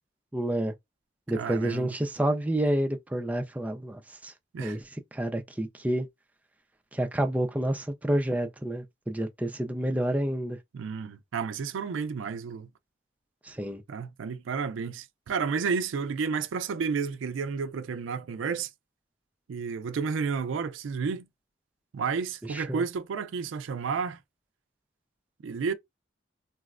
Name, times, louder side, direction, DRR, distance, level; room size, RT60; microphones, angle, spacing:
voice 1, 0.3-0.7 1.3-4.3 4.6-4.8 5.1-6.1 6.9-10.6 13.4-13.8 22.5-22.8, right 1 dB, 10° right, 0.4 m, -29 dB
voice 2, 1.3-1.9 4.5-4.8 10.7-12.7 13.9-18.7 19.5-21.3 21.9-24.2 25.4-25.7, right 5 dB, 80° right, 0.4 m, -31 dB
3.9 x 2.1 x 2.4 m
head